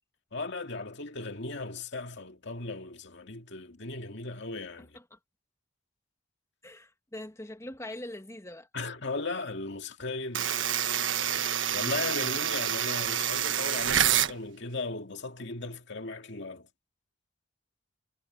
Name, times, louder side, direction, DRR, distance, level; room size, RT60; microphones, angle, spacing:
voice 1, 0.3-5.0 8.7-10.5 11.7-16.7, left 3 dB, 65° left, 2.3 m, -37 dB
voice 2, 6.6-8.7, left 1 dB, 15° left, 1.8 m, -42 dB
sound 1, 10.3-14.3, right 9 dB, 75° right, 1.4 m, -27 dB
head